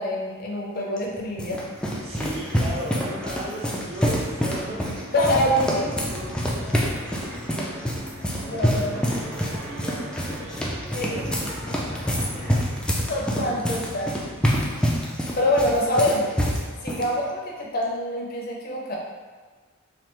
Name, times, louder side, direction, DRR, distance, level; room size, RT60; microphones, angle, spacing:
voice 1, 0.0-1.6 5.1-6.0 8.5-9.0 10.9-11.1 13.1-14.2 15.3-16.3 16.8-19.0, left 1 dB, 50° left, -2 dB, 0.6 m, -25 dB
sound 1, 1.0-17.1, equal, 5° left, 0.3 m, -27 dB
voice 2, 2.0-5.1 5.8-6.4 7.4-11.3 12.1-13.0, right 1 dB, 30° right, -4 dB, 0.6 m, -37 dB
sound 2, 4.2-12.6, equal, 60° right, 0.8 m, -42 dB
3.3 x 2.3 x 2.9 m, 1.4 s
head